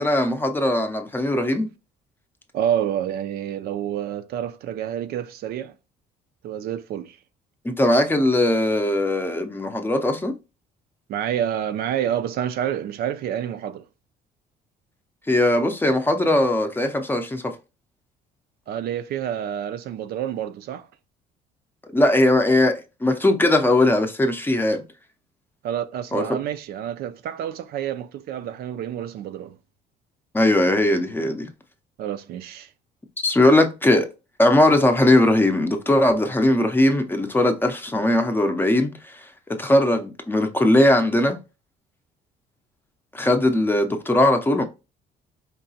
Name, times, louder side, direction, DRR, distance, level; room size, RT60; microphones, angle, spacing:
voice 1, 0.0-1.7 7.6-10.3 15.3-17.6 21.9-24.8 26.1-26.2 30.3-31.5 33.2-34.1 34.4-41.4 43.1-44.6, left 1 dB, 10° left, 0.6 m, -19 dB
voice 2, 2.5-5.7 6.4-7.2 11.1-13.8 18.7-20.9 25.6-29.6 32.0-32.7, right 10 dB, 65° right, 0.4 m, -28 dB
4.5 x 2.9 x 2.7 m
cardioid pair, 110°, 17 cm